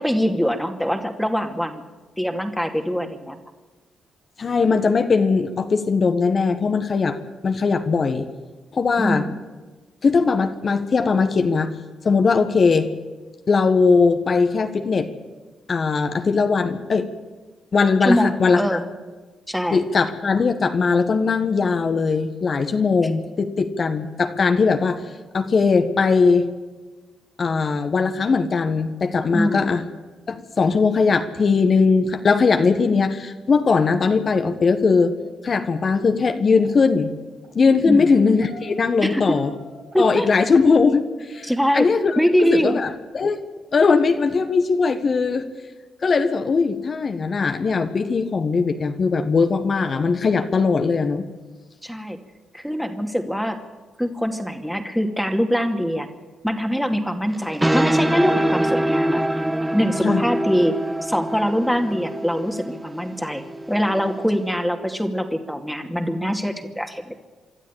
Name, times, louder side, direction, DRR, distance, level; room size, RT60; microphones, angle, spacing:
voice 1, 0.0-1.8 2.2-3.4 9.0-9.4 18.0-18.8 19.5-19.8 29.3-29.7 37.8-38.1 39.0-39.4 39.9-40.3 41.4-41.9 42.2-42.8 51.8-52.2 52.5-53.6 54.0-56.1 56.4-59.2 59.7-63.4 63.7-67.2, equal, ahead, 5 dB, 2.5 m, -23 dB
voice 2, 4.4-7.2 7.4-8.3 8.7-9.3 10.0-11.7 12.0-12.9 13.5-15.1 15.7-17.1 17.7-18.8 19.7-25.0 25.3-26.5 27.4-29.8 30.3-35.1 35.4-37.1 37.5-39.5 40.0-43.4 43.7-45.5 46.0-51.2 60.0-60.2, left 4 dB, 50° left, 7 dB, 1.6 m, -19 dB
sound 1, 36.3-36.7 37.3-37.5 37.9-40.8 41.3-41.6 42.2-42.5 42.8-43.0, right 2 dB, 70° right, 7.6 m, -47 dB
sound 2, 57.3-64.5, right 1 dB, 15° right, 1.3 m, -24 dB
25.5 x 13.0 x 8.9 m, 1.3 s
hypercardioid pair, 45°, 0 cm